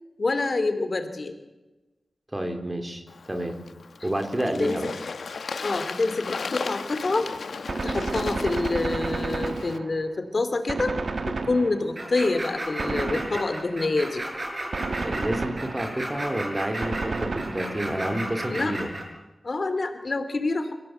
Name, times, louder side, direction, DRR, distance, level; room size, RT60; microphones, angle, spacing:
voice 1, 0.2-1.4 4.4-4.8 5.6-7.3 7.8-10.9 11.3-14.2 18.5-18.7 19.4-20.7, left 3 dB, 50° left, 9 dB, 2.8 m, -27 dB
voice 2, 2.3-3.6 4.0-4.9 15.0-18.9, right 1 dB, 20° right, 5 dB, 3.7 m, -29 dB
Bird / Water, 3.1-9.8, left 5 dB, 85° left, 1.1 m, -36 dB
Gunshot gunfire, 7.7-10.2 10.7-12.1 12.8-13.8 14.7-16.1 16.8-18.0, right 3 dB, 60° right, 1.6 m, -31 dB
sound 1, 12.0-19.1, right 1 dB, 40° right, 6.7 m, -34 dB
28.5 x 17.0 x 8.0 m, 1.1 s
wide cardioid pair, 95°, 0 cm